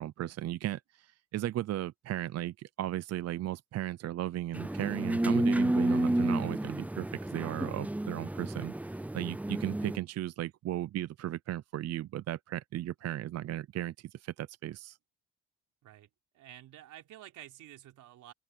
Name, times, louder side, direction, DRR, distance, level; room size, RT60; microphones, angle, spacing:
voice 1, 0.0-15.0, right 13 dB, 55° right, 0.5 m, -36 dB
sound 1, 4.5-10.0, right 1 dB, 5° right, 0.5 m, -30 dB
voice 2, 15.8-18.3, right 12 dB, 85° right, 3.5 m, -51 dB
open air
cardioid pair, 90°, 30 cm